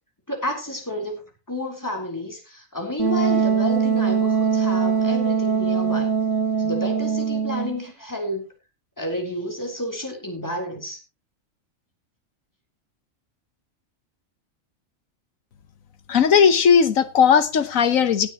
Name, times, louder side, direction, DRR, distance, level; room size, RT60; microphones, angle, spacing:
voice 1, 0.3-1.2 1.5-6.1 6.6-8.5 9.0-11.0, left 1 dB, 15° left, 3.6 m, -30 dB
Wind instrument woodwind instrument, 3.0-7.8, right 6 dB, 65° right, 1.6 m, -22 dB
voice 2, 16.1-18.3, left 7 dB, 75° left, 1.5 m, -17 dB
18.0 x 9.9 x 3.0 m
omnidirectional pair, 1.4 m